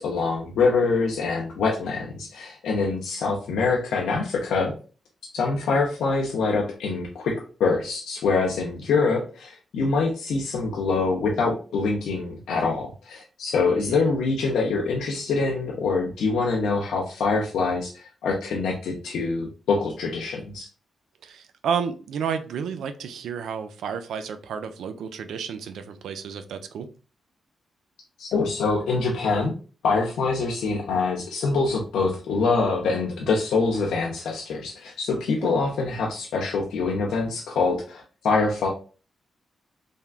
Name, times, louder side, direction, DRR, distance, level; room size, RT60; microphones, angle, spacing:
voice 1, 0.0-4.7 5.3-20.7 28.2-29.5 29.8-38.7, left 4 dB, 90° left, -2 dB, 0.5 m, -25 dB
voice 2, 13.7-14.1 21.2-26.9, right 7 dB, 85° right, 8 dB, 0.3 m, -31 dB
3.4 x 2.3 x 2.4 m, 0.36 s
cardioid pair, 70°, 0 cm